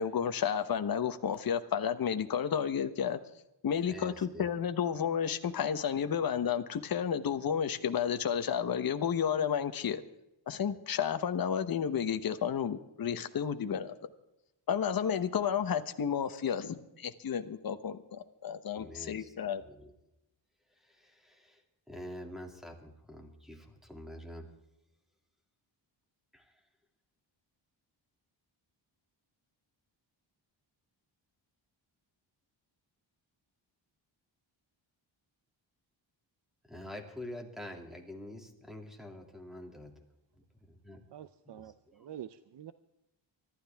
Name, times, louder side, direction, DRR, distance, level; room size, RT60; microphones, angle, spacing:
voice 1, 0.0-3.2 3.6-10.0 10.5-13.9 14.7-19.6, left 8 dB, 45° left, 1.0 m, -31 dB
voice 2, 3.9-4.4 18.8-19.3 19.6-19.9 20.8-21.6 21.9-24.5 26.3-26.5 36.7-39.9 40.7-41.1 42.0-42.1, left 1 dB, ahead, 2.5 m, -46 dB
voice 3, 41.1-42.7, right 10 dB, 60° right, 0.7 m, -47 dB
25.0 x 12.5 x 3.5 m
wide cardioid pair, 125°, 47 cm